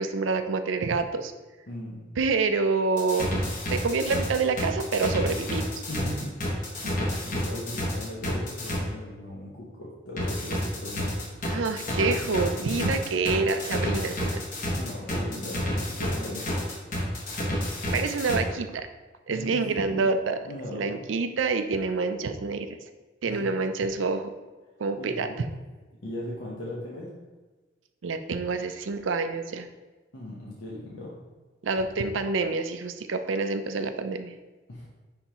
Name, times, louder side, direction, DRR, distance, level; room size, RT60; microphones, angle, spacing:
voice 1, 0.0-1.3 2.2-3.4 3.7-5.8 11.5-14.4 17.9-18.9 19.3-20.4 20.7-22.7 23.2-24.3 24.8-25.3 28.0-29.7 31.6-34.3, right 4 dB, 85° right, 8 dB, 0.5 m, -27 dB
voice 2, 1.7-2.1 5.9-6.4 6.8-11.2 14.8-16.5 19.3-20.1 20.4-21.0 23.3-23.5 25.0-25.5 26.0-27.1 30.1-31.2 34.7-34.9, left 1 dB, 75° left, -6 dB, 1.1 m, -38 dB
sound 1, 3.0-8.8 10.2-18.4, left 1 dB, 45° left, 1.3 m, -30 dB
9.6 x 3.5 x 3.0 m, 1.2 s
head